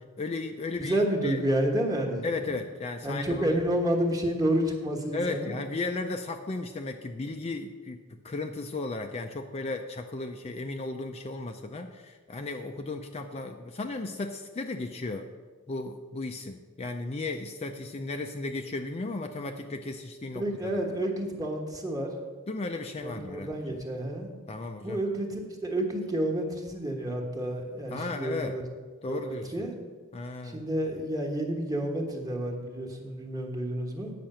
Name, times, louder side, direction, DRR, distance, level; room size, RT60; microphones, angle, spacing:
voice 1, 0.2-1.4 2.2-3.6 5.1-8.0 8.2-15.3 15.7-20.8 22.5-23.8 24.5-25.0 27.9-28.5 29.0-29.7 30.1-30.7, left 3 dB, 30° left, 5 dB, 0.4 m, -35 dB
voice 2, 0.8-2.6 3.0-5.5 20.3-22.1 23.0-24.3 24.8-28.6 29.1-29.7 30.4-34.1, right 1 dB, 15° right, 0 dB, 1.3 m, -30 dB
8.7 x 5.8 x 7.6 m, 1.5 s
head